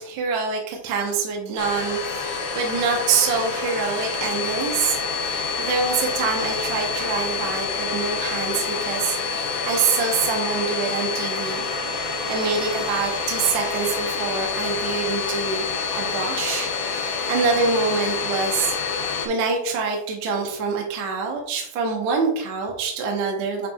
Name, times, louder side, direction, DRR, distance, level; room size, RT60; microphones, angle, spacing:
voice 1, 0.0-11.7 12.3-15.7 15.9-18.8 19.3-23.7, right 5 dB, 65° right, 0 dB, 2.0 m, -25 dB
Domestic sounds home sounds, 1.6-19.3, left 5 dB, 85° left, 2.9 m, -27 dB
8.9 x 4.7 x 2.3 m, 0.74 s
omnidirectional pair, 4.2 m